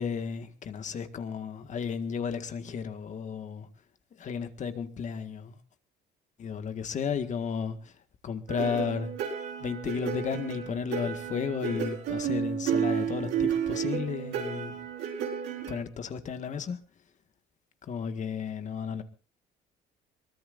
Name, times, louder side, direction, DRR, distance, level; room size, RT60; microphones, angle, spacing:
voice 1, 0.0-3.7 4.2-5.6 6.4-7.9 8.2-9.1 9.6-14.8 15.7-16.8 17.8-19.0, left 6 dB, 45° left, 1.8 m, -33 dB
sound 1, 8.5-15.8, right 8 dB, 90° right, 4.8 m, -32 dB
23.0 x 20.0 x 2.6 m
cardioid pair, 110°, 17 cm